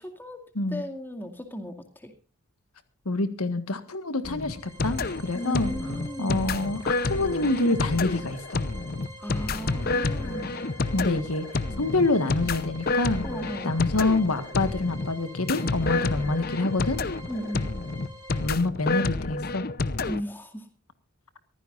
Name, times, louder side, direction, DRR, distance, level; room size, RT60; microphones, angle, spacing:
voice 1, 0.0-0.4 0.7-2.1 5.3-6.6 9.2-10.6 13.2-13.7 17.3-17.7 20.1-20.6, equal, 10° left, 5 dB, 2.3 m, -35 dB
voice 2, 3.0-5.7 6.2-8.6 10.9-11.5 11.8-13.3 13.6-17.0 18.4-19.6, left 2 dB, 80° left, 10 dB, 1.7 m, -26 dB
sound 1, 4.2-20.2, left 3 dB, 40° left, 0.8 m, -29 dB
sound 2, 4.3-18.5, right 1 dB, 15° right, 5.5 m, -47 dB
24.0 x 15.0 x 2.6 m, 0.32 s
head